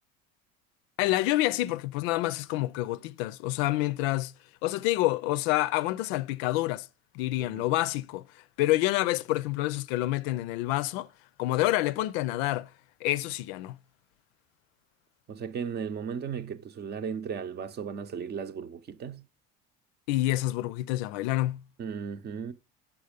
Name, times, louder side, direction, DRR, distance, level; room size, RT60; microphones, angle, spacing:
voice 1, 1.0-4.3 4.6-6.9 7.1-8.2 8.6-11.1 11.4-12.7 13.0-13.8 20.1-21.6, left 17 dB, 80° left, 0.5 m, -28 dB
voice 2, 7.4-7.7 15.3-19.2 21.8-22.5, right 7 dB, 35° right, 0.7 m, -36 dB
7.2 x 5.6 x 5.1 m
supercardioid pair, 120°, 31 cm